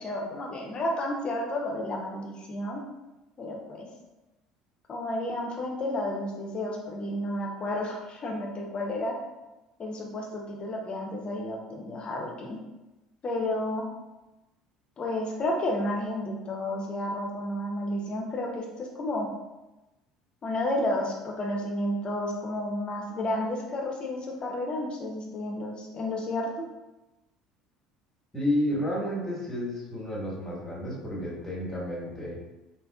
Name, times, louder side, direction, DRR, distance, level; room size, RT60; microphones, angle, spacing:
voice 1, 0.0-2.8 3.4-3.9 4.9-9.1 9.8-12.6 13.2-13.9 15.0-19.3 20.4-26.5, left 1 dB, 35° left, 0 dB, 0.7 m, -31 dB
voice 2, 28.3-32.4, left 1 dB, 10° left, -6 dB, 1.3 m, -31 dB
3.5 x 2.5 x 2.3 m, 1.0 s
figure-of-eight pair, 65°, 3 cm